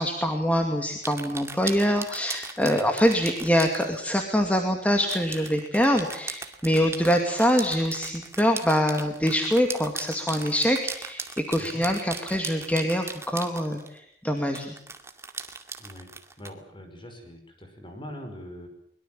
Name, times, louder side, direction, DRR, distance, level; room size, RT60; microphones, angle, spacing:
voice 1, 0.0-14.7, equal, 10° left, 4 dB, 2.3 m, -24 dB
sound 1, 1.0-4.0 5.0-14.0 14.5-16.5, right 4 dB, 15° right, 2.3 m, -38 dB
voice 2, 16.4-18.7, equal, 30° left, 5 dB, 5.6 m, -42 dB
23.5 x 22.5 x 7.6 m, 0.67 s
head